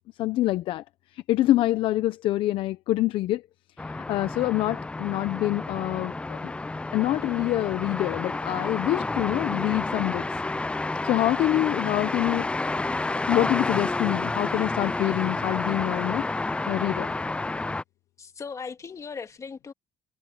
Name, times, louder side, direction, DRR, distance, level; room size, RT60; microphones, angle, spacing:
voice 1, 0.2-0.8 1.1-3.4 3.8-6.5 6.9-10.3 11.0-12.5 13.3-17.1, left 15 dB, 75° left, 0.8 m, -26 dB
sound 1, 3.8-17.8, left 2 dB, 10° left, 0.4 m, -30 dB
voice 2, 18.2-19.7, left 5 dB, 35° left, 2.1 m, -38 dB
cardioid pair, 90°, 9 cm